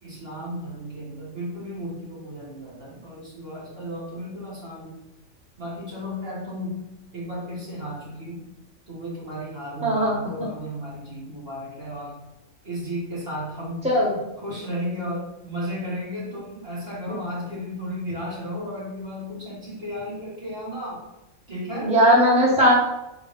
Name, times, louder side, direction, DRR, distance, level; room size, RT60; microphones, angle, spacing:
voice 1, 0.0-5.0 5.6-8.5 8.9-12.2 12.6-14.0 14.4-21.0 21.5-21.9, equal, 45° right, -6 dB, 2.1 m, -34 dB
voice 2, 9.8-10.2 13.8-14.2 17.1-17.2 21.8-22.7, equal, 5° right, -5 dB, 1.4 m, -18 dB
4.7 x 3.9 x 5.3 m, 0.93 s
omnidirectional pair, 1.4 m